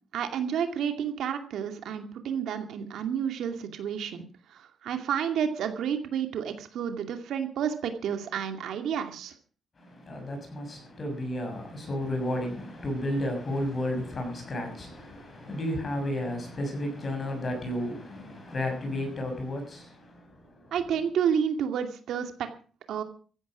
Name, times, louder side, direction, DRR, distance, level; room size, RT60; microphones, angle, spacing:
voice 1, 0.1-4.2 4.5-9.3 20.7-22.5 22.9-23.0, right 8 dB, 75° right, 2.4 m, -30 dB
voice 2, 9.8-20.7, left 1 dB, 30° left, 6.5 m, -33 dB
15.0 x 11.5 x 6.0 m
cardioid pair, 160°, 0 cm